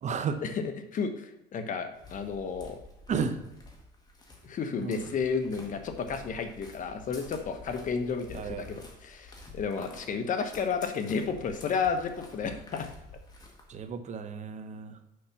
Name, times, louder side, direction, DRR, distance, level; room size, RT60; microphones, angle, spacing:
voice 1, 0.0-0.4 3.1-3.4 4.8-5.1 8.3-8.7 13.7-15.0, right 6 dB, 45° right, 9 dB, 0.8 m, -33 dB
voice 2, 0.9-2.8 4.4-12.9, left 5 dB, 50° left, 7 dB, 1.0 m, -32 dB
sound 1, 1.9-13.8, left 2 dB, 25° left, 1.9 m, -50 dB
6.5 x 5.7 x 5.7 m, 0.90 s
cardioid pair, 110°, 17 cm